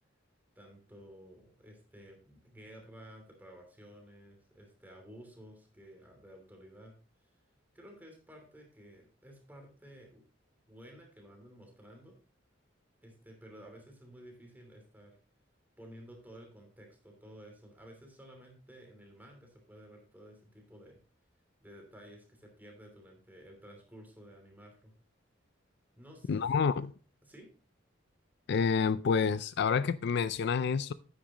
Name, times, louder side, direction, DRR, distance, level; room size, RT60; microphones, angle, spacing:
voice 1, 0.5-6.9 7.2-7.3 7.7-10.2 10.7-12.2 13.0-15.2 15.8-21.0 21.6-24.9 26.0-26.7 27.2-27.5, equal, 10° right, 2.9 m, -53 dB
voice 2, 26.3-26.9 28.5-30.9, left 6 dB, 60° left, 0.4 m, -28 dB
9.9 x 8.9 x 3.0 m
head